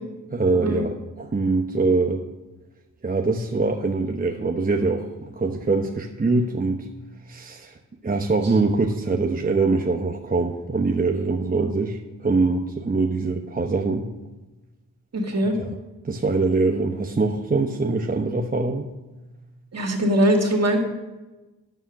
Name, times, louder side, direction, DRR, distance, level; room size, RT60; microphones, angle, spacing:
voice 1, 0.3-2.2 3.0-6.9 7.3-14.1 15.6-15.7 16.0-18.9, right 3 dB, 25° right, 3 dB, 0.8 m, -23 dB
voice 2, 15.1-15.5 19.7-20.8, equal, 50° right, 3 dB, 2.1 m, -21 dB
9.2 x 7.1 x 6.3 m, 1.1 s
cardioid pair, 55°, 33 cm